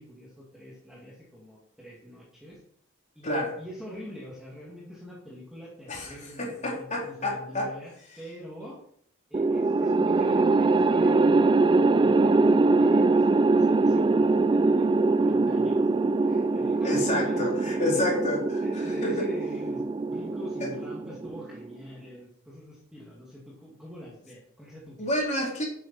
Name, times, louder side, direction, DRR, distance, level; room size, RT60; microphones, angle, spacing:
voice 1, 0.0-2.6 3.1-8.8 9.3-18.0 18.6-25.1, equal, 5° right, -6 dB, 2.6 m, -44 dB
voice 2, 3.2-3.6 5.9-7.7 16.8-18.6 19.0-19.3 20.6-20.7 25.0-25.6, left 1 dB, 35° left, -3 dB, 3.9 m, -29 dB
sound 1, 9.3-21.7, right 3 dB, 25° right, 0.3 m, -23 dB
12.0 x 8.2 x 4.5 m, 0.64 s
head